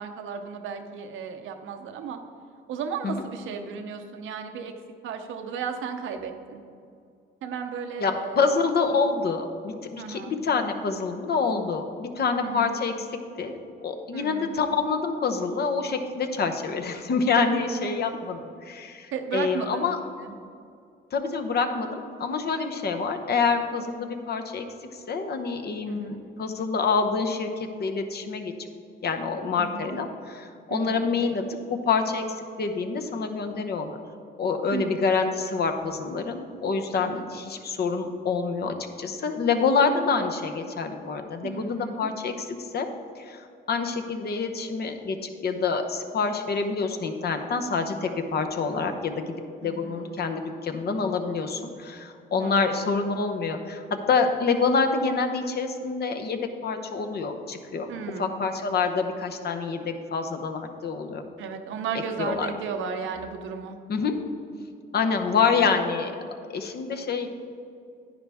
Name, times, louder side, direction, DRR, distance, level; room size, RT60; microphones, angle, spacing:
voice 1, 0.0-2.2 2.7-4.7 5.0-6.6 7.4-8.5 8.9-9.0 10.0-10.4 12.4-12.8 14.1-14.6 17.5-18.2 19.1-19.8 20.2-20.4 25.9-26.2 29.6-30.0 30.7-31.1 34.7-35.2 37.0-37.2 41.4-42.1 49.6-50.2 52.4-52.7 57.9-58.5 61.4-63.8, right 6 dB, 80° right, 6 dB, 0.9 m, -35 dB
voice 2, 8.0-12.9 13.4-20.0 21.1-24.7 25.1-28.5 29.0-31.4 31.7-32.2 32.6-34.0 34.4-42.9 43.2-49.2 49.6-57.9 58.2-61.2 62.2-62.5 63.9-64.2 64.9-66.1 66.5-67.3, left 5 dB, 55° left, 5 dB, 0.9 m, -27 dB
10.0 x 9.8 x 3.5 m, 2.3 s
cardioid pair, 90°, 20 cm